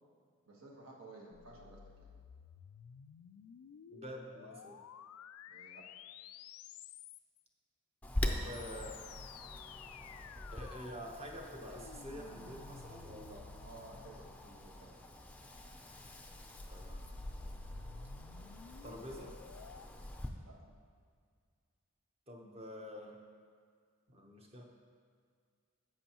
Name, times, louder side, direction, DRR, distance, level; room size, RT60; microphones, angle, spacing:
voice 1, 0.5-2.1 5.5-5.9 13.6-15.0 20.4-20.7, right 2 dB, 75° right, -2 dB, 1.5 m, -55 dB
sound 1, 1.3-7.4 8.3-14.9 16.0-19.9, left 8 dB, 90° left, 0.3 m, -54 dB
voice 2, 3.9-4.8 8.1-9.0 10.5-13.6 14.1-14.3 16.7-17.1 18.8-19.4 22.3-23.2 24.1-24.6, equal, 30° right, 1 dB, 0.9 m, -48 dB
Wind, 8.0-20.3, left 1 dB, 5° left, 0.4 m, -44 dB
10.5 x 7.7 x 3.0 m, 2.1 s
head